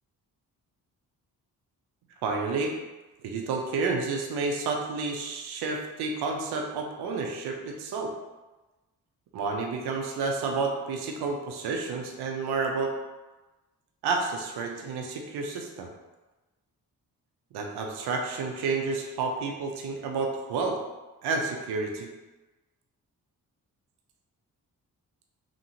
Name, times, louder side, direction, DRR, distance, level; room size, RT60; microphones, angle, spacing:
voice 1, 2.2-2.7 3.2-8.1 9.3-12.9 14.0-15.9 17.5-20.8 21.2-22.1, right 4 dB, 85° right, 2 dB, 0.5 m, -30 dB
2.9 x 2.7 x 2.6 m, 1.1 s
cardioid pair, 55°, 38 cm